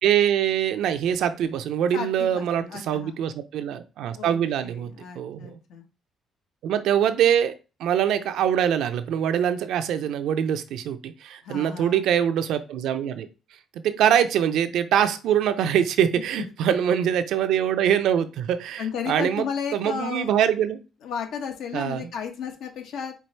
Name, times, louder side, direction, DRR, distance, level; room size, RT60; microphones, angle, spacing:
voice 1, 0.0-5.6 6.6-7.5 7.8-13.3 13.7-19.5 19.7-20.8 21.7-22.1, right 9 dB, 75° right, 10 dB, 0.5 m, -23 dB
voice 2, 1.9-3.2 4.1-4.4 4.6-5.8 11.4-12.0 18.8-20.4 21.0-23.1, left 7 dB, 75° left, 4 dB, 1.0 m, -33 dB
4.6 x 2.4 x 4.3 m, 0.31 s
cardioid pair, 110°, 0 cm